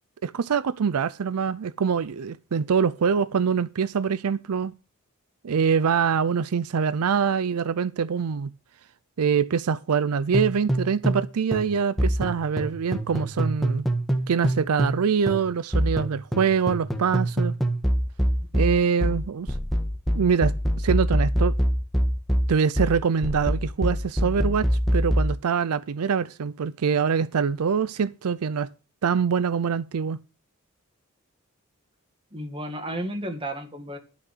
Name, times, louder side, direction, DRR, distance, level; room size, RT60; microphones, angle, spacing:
voice 1, 0.2-4.7 5.4-8.5 9.2-13.9 14.3-17.5 18.5-19.5 20.1-21.5 22.5-28.7 29.0-30.2, right 6 dB, 90° right, 0.5 m, -24 dB
sound 1, 10.3-11.3 11.5-15.0 15.3-25.3, equal, ahead, 1.5 m, -24 dB
voice 2, 32.3-34.0, right 1 dB, 25° right, 2.1 m, -32 dB
11.5 x 6.2 x 6.6 m
head